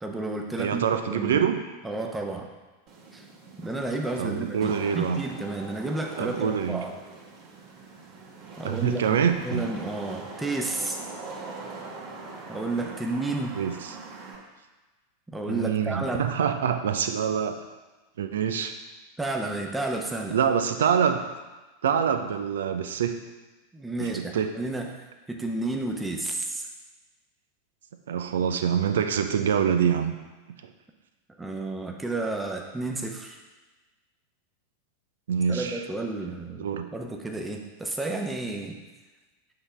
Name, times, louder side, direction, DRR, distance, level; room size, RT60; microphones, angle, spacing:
voice 1, 0.0-0.8 1.1-1.4 1.8-2.5 3.1-3.2 3.6-6.9 8.6-11.0 12.5-13.6 15.3-16.3 19.2-20.4 23.7-26.7 31.4-33.4 35.5-38.8, right 2 dB, 10° right, 2 dB, 0.9 m, -31 dB
voice 2, 0.6-1.6 4.2-5.3 6.2-6.8 8.6-9.7 13.6-13.9 15.5-17.6 18.2-18.7 20.3-21.2 21.8-23.2 24.0-24.5 28.1-30.1 35.3-35.8 36.6-36.9, right 7 dB, 70° right, 8 dB, 0.6 m, -25 dB
Wind / Rain, 2.9-14.4, right 3 dB, 45° right, 1.4 m, -42 dB
8.0 x 5.5 x 3.4 m, 1.2 s
figure-of-eight pair, 90°, 0 cm